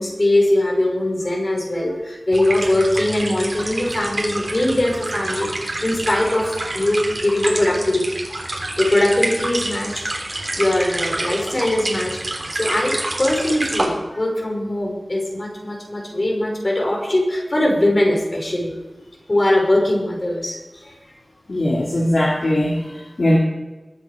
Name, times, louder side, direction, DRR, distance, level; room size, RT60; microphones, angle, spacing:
voice 1, 0.0-10.0 10.3-12.2 12.5-18.8 19.3-21.0, left 1 dB, 45° left, -1 dB, 5.6 m, -21 dB
sound 1, 2.3-13.8, right 2 dB, 55° right, 3.5 m, -28 dB
voice 2, 21.5-23.4, left 1 dB, 70° left, -5 dB, 2.6 m, -20 dB
22.5 x 8.2 x 5.1 m, 1.1 s
wide cardioid pair, 65°, 0 cm